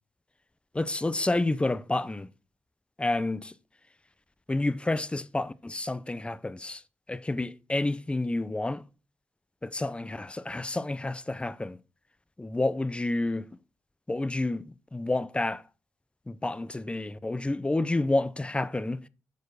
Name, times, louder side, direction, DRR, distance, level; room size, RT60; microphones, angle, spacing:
voice 1, 0.7-2.3 3.0-3.5 4.5-6.8 7.1-8.8 9.6-11.8 12.4-13.5 14.1-15.6 16.3-19.0, left 2 dB, 15° left, 0.7 m, -29 dB
11.5 x 4.5 x 4.9 m
supercardioid pair, 50°, 6 cm